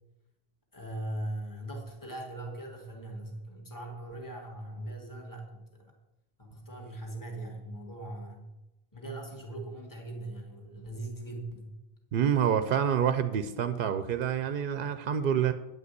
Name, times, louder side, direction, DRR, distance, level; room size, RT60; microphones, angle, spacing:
voice 1, 0.7-5.9 6.4-8.5 8.9-11.7, right 1 dB, 20° left, 1 dB, 1.8 m, -40 dB
voice 2, 12.1-15.5, right 8 dB, 65° right, 10 dB, 0.7 m, -27 dB
9.7 x 5.1 x 8.1 m, 0.99 s
omnidirectional pair, 1.1 m